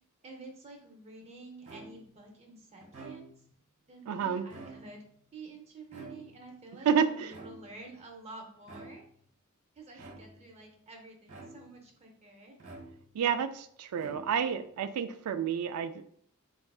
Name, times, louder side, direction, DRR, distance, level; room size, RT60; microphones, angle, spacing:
voice 1, 0.2-3.3 3.9-5.0 5.3-9.1 9.8-12.6, right 3 dB, 30° right, 2 dB, 0.6 m, -49 dB
sound 1, 1.6-2.2 2.8-3.6 4.4-5.1 5.9-6.6 7.3-7.9 8.6-9.2 9.9-10.5 11.3-11.9 12.6-13.3 13.9-14.6, right 2 dB, 65° right, 1.2 m, -49 dB
voice 2, 4.1-4.5 6.9-7.3 13.1-15.9, right 7 dB, 85° right, 10 dB, 0.3 m, -29 dB
4.4 x 2.4 x 2.3 m, 0.63 s
head